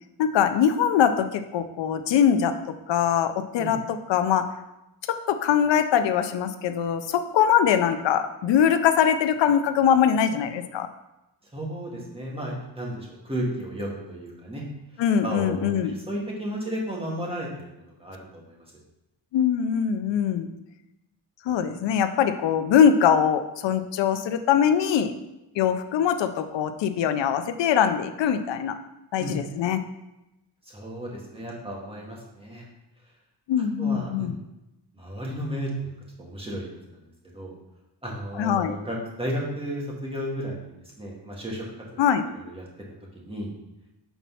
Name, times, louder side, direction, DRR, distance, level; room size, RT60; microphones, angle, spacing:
voice 1, 0.2-2.5 2.9-3.8 4.1-4.4 5.3-10.9 15.0-15.9 19.3-20.5 21.5-25.1 25.6-28.8 29.1-29.8 33.5-34.4 38.4-38.8 42.0-42.2, left 8 dB, 85° left, 9 dB, 0.6 m, -22 dB
voice 2, 11.5-14.6 15.2-17.5 17.8-18.7 29.2-29.4 30.7-32.6 33.8-34.3 34.9-35.9 36.2-37.0 37.3-37.5 38.0-41.6 41.9-42.0 42.3-42.6 43.1-43.5, right 1 dB, 15° right, -3 dB, 1.7 m, -33 dB
5.9 x 4.1 x 5.5 m, 0.92 s
wide cardioid pair, 135°, 43 cm